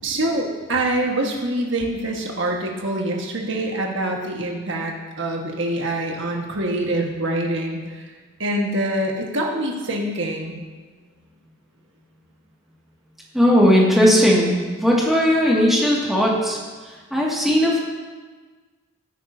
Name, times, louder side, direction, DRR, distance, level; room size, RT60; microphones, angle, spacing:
voice 1, 0.0-8.0 8.4-10.6, right 1 dB, 60° right, 0 dB, 1.6 m, -25 dB
voice 2, 13.3-16.6 17.1-17.8, equal, ahead, -5 dB, 2.2 m, -17 dB
16.0 x 9.2 x 2.8 m, 1.4 s
head